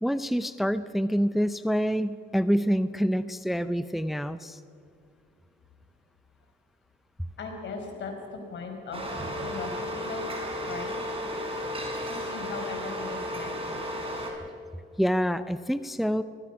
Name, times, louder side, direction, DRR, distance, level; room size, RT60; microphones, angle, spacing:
voice 1, 0.0-4.6 15.0-16.2, equal, ahead, 12 dB, 0.6 m, -26 dB
voice 2, 7.4-9.0 9.4-10.3 10.7-11.0 12.1-13.8, left 4 dB, 65° left, 3 dB, 5.2 m, -38 dB
sound 1, 8.9-14.3, equal, 30° right, 5.2 m, -33 dB
24.0 x 19.0 x 6.2 m, 2.3 s
cardioid pair, 90°, 20 cm